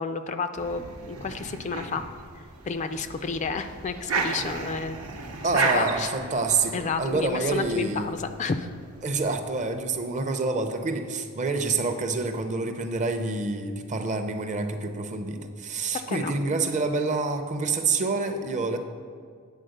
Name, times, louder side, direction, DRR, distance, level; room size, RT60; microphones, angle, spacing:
voice 1, 0.0-2.0 2.6-5.0 5.7-6.1 6.7-8.7 15.9-16.3, left 5 dB, 35° left, 9 dB, 0.3 m, -31 dB
sound 1, 0.6-9.7, right 4 dB, 80° right, 0.8 m, -34 dB
voice 2, 5.4-8.1 9.0-18.8, right 3 dB, 35° right, 7 dB, 0.6 m, -27 dB
9.0 x 4.3 x 6.5 m, 2.1 s
head